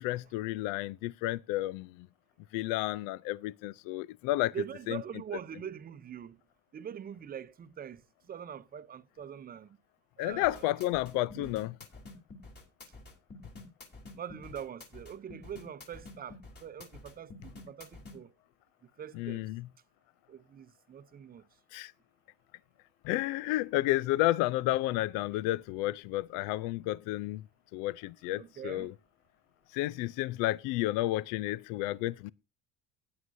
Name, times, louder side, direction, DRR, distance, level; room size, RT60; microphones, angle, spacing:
voice 1, 0.0-2.1 2.5-4.5 4.9-5.0 10.2-11.8 19.1-19.7 21.7-21.9 23.0-27.4 27.7-28.9 29.7-32.3, left 17 dB, 75° left, 0.5 m, -31 dB
voice 2, 4.5-6.4 6.7-8.0 8.3-9.7 10.2-10.8 11.4-11.5 14.2-18.3 19.0-19.4 20.3-21.4 28.4-28.9, right 8 dB, 25° right, 0.7 m, -43 dB
sound 1, 10.3-18.2, left 2 dB, 30° left, 3.4 m, -49 dB
16.0 x 9.5 x 2.6 m
cardioid pair, 115°, 33 cm